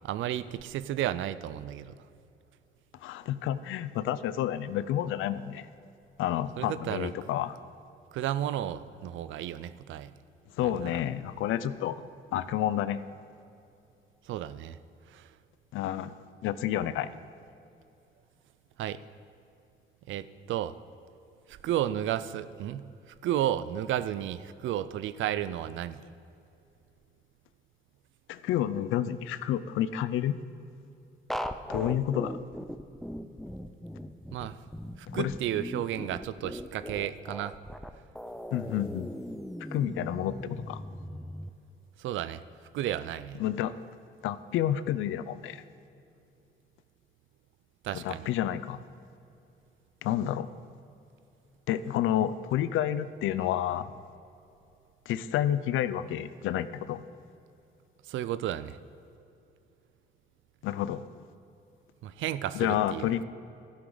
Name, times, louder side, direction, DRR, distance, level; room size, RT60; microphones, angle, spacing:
voice 1, 0.0-2.0 6.6-7.1 8.1-10.1 10.6-11.0 14.3-14.8 15.1-15.3 18.8-19.0 20.1-20.7 21.5-22.9 23.2-26.0 34.3-34.6 35.0-37.6 42.0-42.4 42.7-43.4 47.8-48.3 58.1-58.8 62.0-63.2, right 11 dB, 75° right, 15 dB, 0.5 m, -33 dB
voice 2, 3.0-5.7 6.2-7.6 10.6-12.0 12.3-13.0 15.7-16.1 16.4-17.1 28.3-30.4 31.7-32.3 35.1-35.3 38.5-39.1 39.7-40.8 43.4-43.7 44.2-45.6 47.9-48.8 50.0-50.5 51.7-53.9 55.1-57.0 60.6-61.0 62.5-63.2, left 11 dB, 85° left, 15 dB, 0.5 m, -29 dB
sound 1, 31.3-41.5, equal, ahead, 0.5 m, -39 dB
12.5 x 11.0 x 3.9 m, 2.7 s
cardioid pair, 90°, 20 cm